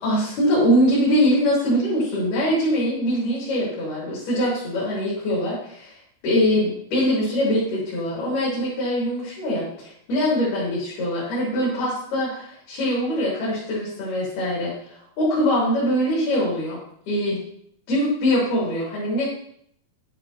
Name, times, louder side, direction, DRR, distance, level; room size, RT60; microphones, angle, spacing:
voice 1, 0.0-5.9 6.2-14.7 15.2-16.8 17.1-17.4 17.9-19.3, equal, 75° left, -7 dB, 5.5 m, -22 dB
11.5 x 10.5 x 4.5 m, 0.69 s
omnidirectional pair, 4.4 m